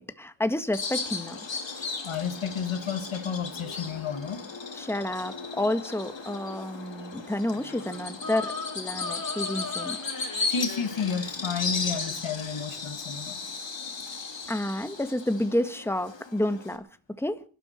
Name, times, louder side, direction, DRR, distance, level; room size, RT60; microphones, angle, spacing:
voice 1, 0.0-1.4 4.7-10.0 14.5-17.4, left 1 dB, 5° left, 1.7 m, -30 dB
Bird vocalization bird call bird song, 0.7-16.8, left 4 dB, 65° left, 2.9 m, -36 dB
voice 2, 2.0-4.4 10.5-13.4, left 6 dB, 80° left, 2.0 m, -31 dB
sound 1, 7.4-12.7, left 3 dB, 45° left, 4.5 m, -39 dB
22.5 x 12.5 x 4.4 m
cardioid pair, 45°, 48 cm